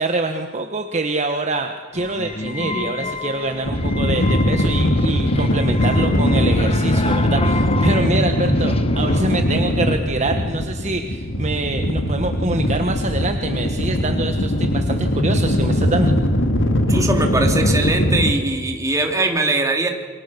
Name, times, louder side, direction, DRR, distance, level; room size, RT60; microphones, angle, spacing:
voice 1, 0.0-16.1, right 2 dB, 35° right, 5 dB, 1.3 m, -25 dB
sound 1, 1.9-9.4, left 3 dB, 30° left, 1.1 m, -31 dB
sound 2, 3.6-18.3, left 1 dB, 65° left, 2.6 m, -20 dB
voice 2, 16.9-19.9, right 2 dB, 15° right, 2 dB, 2.8 m, -21 dB
28.0 x 24.0 x 6.9 m, 1.5 s
head